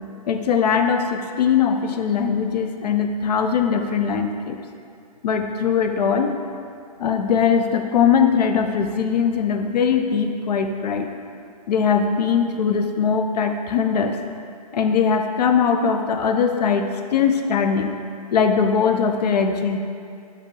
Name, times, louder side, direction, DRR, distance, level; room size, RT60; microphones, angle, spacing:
voice 1, 0.3-4.6 5.2-6.3 7.0-11.1 11.7-14.2 14.7-17.9 18.3-19.8, left 6 dB, 85° left, 6 dB, 0.4 m, -20 dB
5.1 x 2.7 x 3.1 m, 2.4 s
hypercardioid pair, 145°, 20 cm